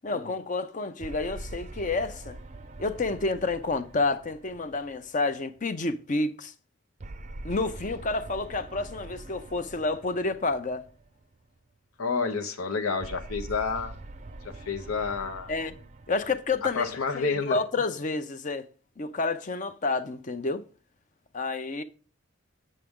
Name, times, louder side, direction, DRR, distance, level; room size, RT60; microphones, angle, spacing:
voice 1, 0.0-2.4 2.8-6.5 7.4-10.8 15.5-15.8 16.1-18.6 19.0-20.6 21.3-21.8, left 3 dB, 35° left, 0.6 m, -29 dB
sound 1, 1.0-5.6 7.0-11.4 13.0-17.6, right 2 dB, 35° right, 0.5 m, -44 dB
voice 2, 12.0-14.0 14.7-15.5 16.8-17.6, left 4 dB, 85° left, 0.9 m, -29 dB
7.4 x 6.7 x 3.6 m
head